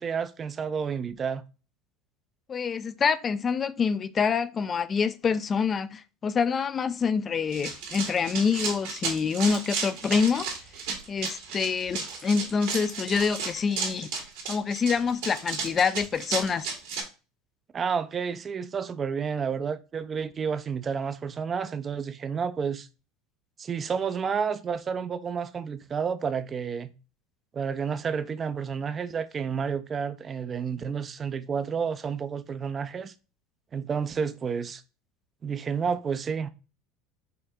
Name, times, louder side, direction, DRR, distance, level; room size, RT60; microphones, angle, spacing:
voice 1, 0.0-1.5 17.7-22.9 23.6-26.9 27.5-33.1 33.7-34.8 35.4-36.5, right 6 dB, 30° right, 0.5 m, -30 dB
voice 2, 2.5-10.5 11.1-14.1 14.5-16.7, left 5 dB, 30° left, 0.4 m, -26 dB
Run, 7.5-17.0, right 5 dB, 75° right, 2.0 m, -33 dB
5.6 x 2.7 x 3.5 m
supercardioid pair, 100°, 0 cm